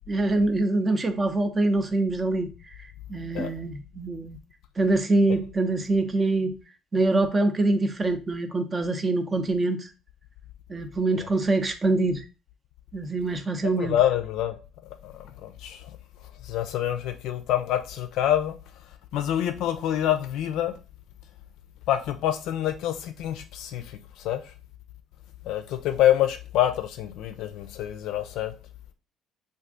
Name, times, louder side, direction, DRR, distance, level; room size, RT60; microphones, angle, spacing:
voice 1, 0.1-2.5 3.1-4.4 4.8-6.6 6.9-9.8 10.7-12.2 12.9-13.9, right 2 dB, 30° right, 0.6 m, -24 dB
voice 2, 13.8-14.6 15.0-15.9 16.4-18.6 19.1-20.7 21.9-24.4 25.4-28.5, left 12 dB, 65° left, 0.4 m, -26 dB
2.5 x 2.4 x 3.7 m
hypercardioid pair, 55°, 0 cm